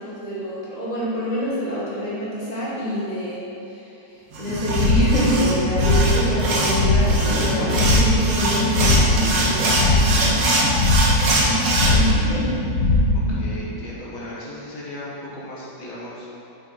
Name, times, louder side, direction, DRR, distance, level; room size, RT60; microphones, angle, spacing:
voice 1, 0.0-12.5, equal, 25° left, -9 dB, 1.4 m, -27 dB
sound 1, 4.3-11.9, right 2 dB, 55° right, 1.1 m, -23 dB
sound 2, 4.5-13.5, left 2 dB, 80° left, 0.6 m, -21 dB
voice 2, 13.3-16.5, left 1 dB, 50° left, -7 dB, 1.6 m, -36 dB
6.2 x 5.5 x 4.1 m, 2.8 s
omnidirectional pair, 2.1 m